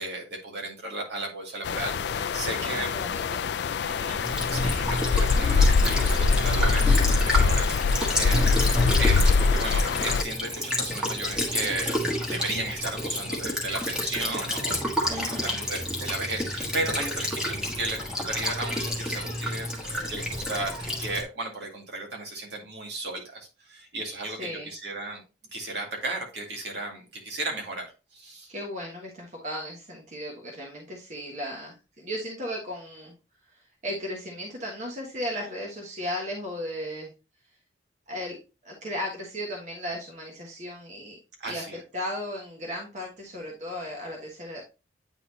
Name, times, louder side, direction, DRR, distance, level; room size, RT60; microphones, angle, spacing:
voice 1, 0.0-2.9 3.8-8.6 9.0-12.0 12.3-14.9 15.2-25.2 25.5-28.5 41.4-41.8, right 2 dB, 65° right, 0 dB, 2.1 m, -35 dB
sound 1, 1.6-10.2, left 4 dB, 65° left, 0.3 m, -23 dB
voice 2, 2.7-3.4 15.1-15.6 24.4-24.7 28.5-33.1 33.4-37.1 38.1-38.4 38.6-41.6 41.9-44.6, equal, 40° right, -1 dB, 1.3 m, -36 dB
Child speech kid speaking / Bird vocalization bird call bird song / Stream, 4.2-21.2, left 1 dB, 5° right, 1.4 m, -30 dB
9.1 x 4.1 x 2.7 m, 0.29 s
head